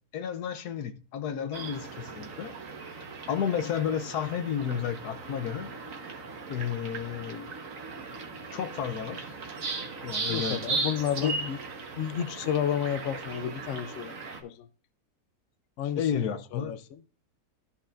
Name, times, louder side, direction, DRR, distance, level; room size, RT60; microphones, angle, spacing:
voice 1, 0.1-2.5 2.9-5.7 6.5-7.5 8.5-9.3 10.0-10.9 11.2-11.3 15.9-16.7, left 8 dB, 85° left, 1.3 m, -32 dB
sound 1, 1.5-14.4, right 4 dB, 60° right, 1.5 m, -37 dB
voice 2, 10.3-11.6 12.0-14.1 14.4-14.7 15.8-16.3 16.6-16.8, left 9 dB, 65° left, 0.8 m, -31 dB
13.0 x 5.6 x 2.5 m
omnidirectional pair, 1.6 m